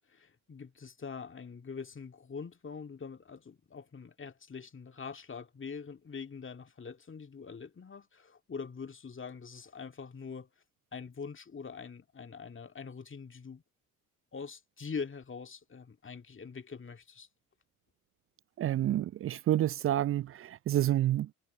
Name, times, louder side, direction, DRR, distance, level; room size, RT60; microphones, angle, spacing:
voice 1, 0.0-10.5 10.9-13.6 14.3-17.3, left 5 dB, 25° left, 2.0 m, -44 dB
voice 2, 18.6-21.3, right 12 dB, 30° right, 0.4 m, -29 dB
figure-of-eight pair, 50°, 46 cm